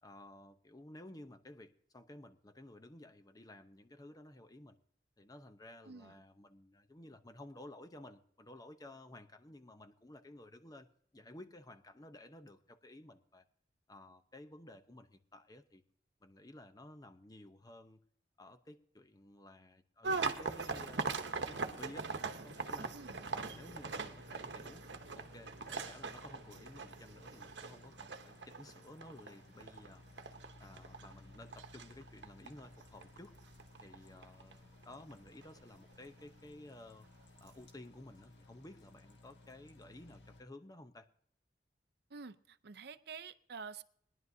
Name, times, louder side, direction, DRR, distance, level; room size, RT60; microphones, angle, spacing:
voice 1, 0.0-4.8 5.2-10.9 11.1-13.4 13.9-15.8 16.2-18.0 18.4-22.1 22.4-22.9 23.3-24.9 25.1-30.1 30.6-33.3 33.8-37.1 37.4-41.1, left 1 dB, 20° left, 8 dB, 0.8 m, -54 dB
voice 2, 5.8-6.2 22.9-23.2 42.1-43.8, right 5 dB, 65° right, 13 dB, 0.6 m, -48 dB
sound 1, 20.0-35.1 35.4-35.9 36.7-36.8 37.2-37.5, right 4 dB, 80° right, 1.0 m, -41 dB
sound 2, 21.3-40.4, left 2 dB, 85° left, 1.8 m, -59 dB
21.0 x 11.0 x 2.7 m, 0.63 s
head